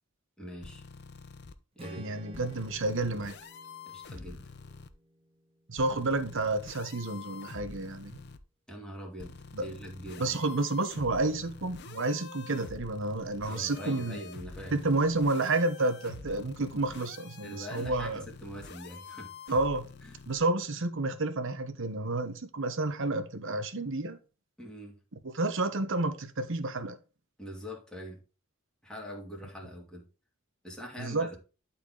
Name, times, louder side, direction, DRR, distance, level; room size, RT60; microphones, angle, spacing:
voice 1, 0.4-0.8 1.7-2.1 3.9-4.5 8.7-10.4 13.5-14.7 17.4-19.3 20.0-20.2 24.6-25.0 27.4-28.2 28.8-30.0 30.6-31.3, equal, 5° left, 2.5 m, -43 dB
sound 1, 0.6-1.5 2.3-4.9 5.8-8.4 9.2-20.4, left 4 dB, 55° left, 0.7 m, -47 dB
Strum, 1.8-6.0, right 1 dB, 25° right, 1.5 m, -52 dB
voice 2, 2.0-3.4 5.7-8.2 9.5-9.6 10.2-14.2 14.7-18.2 19.5-19.9 20.3-24.2 25.3-27.0 31.0-31.4, right 2 dB, 65° right, 1.0 m, -30 dB
11.5 x 4.4 x 3.8 m
head